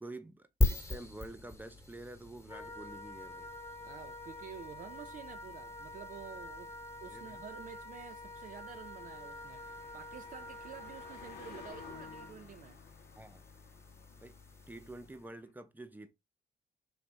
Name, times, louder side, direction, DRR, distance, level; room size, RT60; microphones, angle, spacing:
voice 1, 0.0-3.5 7.1-7.4 13.1-13.4 14.2-14.4 14.7-16.1, right 2 dB, 10° right, 0.7 m, -48 dB
sound 1, 0.6-15.3, left 2 dB, 15° left, 1.2 m, -41 dB
Wind instrument woodwind instrument, 2.5-12.4, left 1 dB, 35° left, 0.9 m, -48 dB
voice 2, 3.8-6.7 7.0-12.8, right 8 dB, 45° right, 0.4 m, -50 dB
Car passing by, 4.4-15.5, left 8 dB, 65° left, 0.7 m, -57 dB
3.4 x 2.4 x 3.9 m
supercardioid pair, 50°, 18 cm